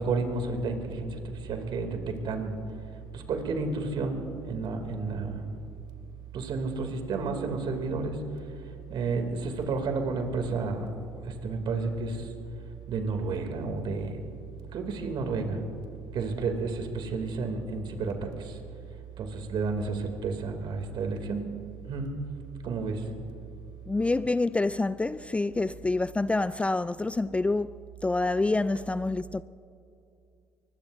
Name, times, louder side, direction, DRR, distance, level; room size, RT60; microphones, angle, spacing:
voice 1, 0.0-2.5 3.1-5.5 6.3-8.2 8.9-10.9 11.2-12.3 12.9-14.3 14.7-15.6 16.1-18.6 19.2-21.4 21.9-22.1 22.6-23.0, right 4 dB, 55° right, 2.7 m, -31 dB
voice 2, 23.9-29.4, left 2 dB, 15° left, 0.3 m, -27 dB
24.5 x 20.5 x 2.7 m
hypercardioid pair, 65°, 9 cm